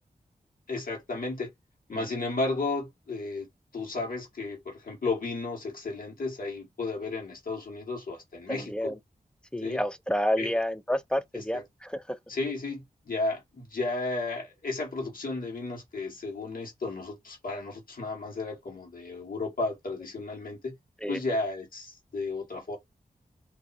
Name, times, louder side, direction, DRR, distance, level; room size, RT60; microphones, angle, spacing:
voice 1, 0.7-1.5 1.9-3.5 3.7-8.9 9.6-9.8 10.4-10.6 11.3-11.6 12.3-20.8 21.1-22.8, left 3 dB, 65° left, 1.3 m, -33 dB
voice 2, 8.5-9.0 9.5-12.2 21.0-21.2, equal, 5° left, 0.3 m, -29 dB
2.6 x 2.2 x 4.0 m
wide cardioid pair, 125°, 16 cm